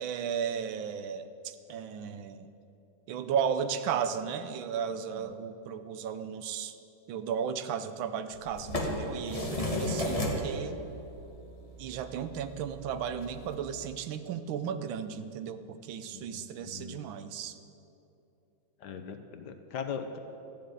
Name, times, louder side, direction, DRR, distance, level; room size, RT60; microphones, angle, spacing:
voice 1, 0.0-2.5 3.1-6.7 7.1-10.8 11.8-17.6, right 7 dB, 90° right, 11 dB, 1.5 m, -35 dB
sound 1, 8.3-13.5, left 1 dB, 20° left, 1.4 m, -35 dB
voice 2, 16.1-17.0 18.8-20.2, left 6 dB, 65° left, 6 dB, 1.4 m, -40 dB
13.5 x 7.4 x 9.1 m, 2.8 s
omnidirectional pair, 2.1 m